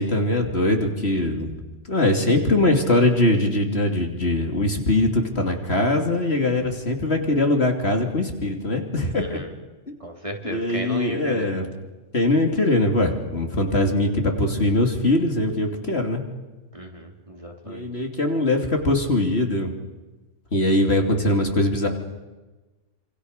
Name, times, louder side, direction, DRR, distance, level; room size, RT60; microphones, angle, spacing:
voice 1, 0.0-1.5 1.9-9.4 9.9-10.0 10.4-11.6 12.1-16.2 17.6-19.7 20.5-21.9, left 2 dB, 55° left, 4 dB, 3.2 m, -22 dB
voice 2, 9.1-9.5 10.0-11.6 16.7-17.9, right 1 dB, 25° right, 2 dB, 3.8 m, -34 dB
28.0 x 27.0 x 6.6 m, 1.2 s
omnidirectional pair, 1.3 m